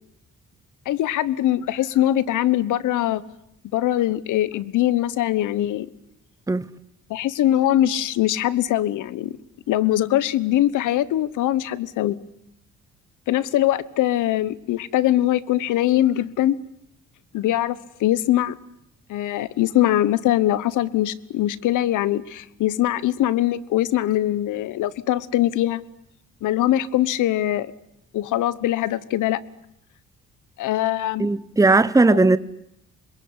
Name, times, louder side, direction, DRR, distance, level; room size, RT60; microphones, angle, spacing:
voice 1, 0.8-3.2 3.7-5.9 7.1-9.4 9.7-12.2 13.3-16.6 17.3-18.5 19.1-25.8 26.4-27.7 28.1-29.4 30.6-31.3 32.1-32.4, left 13 dB, 85° left, 1.2 m, -22 dB
voice 2, 31.2-32.4, right 3 dB, 10° right, 1.0 m, -17 dB
26.5 x 22.0 x 9.7 m
cardioid pair, 90°, 30 cm